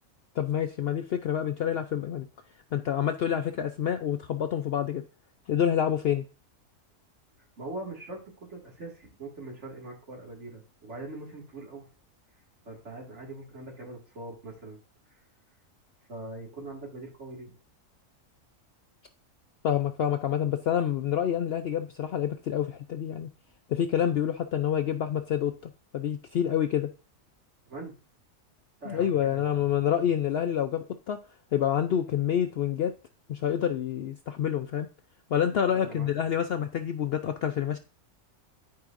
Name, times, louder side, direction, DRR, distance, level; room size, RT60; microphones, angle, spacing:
voice 1, 0.4-2.3 2.7-5.0 5.5-6.2 19.6-23.3 23.7-25.5 25.9-26.9 28.9-31.2 31.5-32.9 33.3-34.9 35.3-37.8, left 9 dB, 65° left, 0.6 m, -27 dB
voice 2, 7.6-8.2 8.5-11.8 12.7-14.8 16.1-17.5 27.7-27.9 28.8-29.7 35.7-36.1, right 2 dB, 60° right, 2.4 m, -42 dB
12.0 x 4.8 x 2.5 m
omnidirectional pair, 1.4 m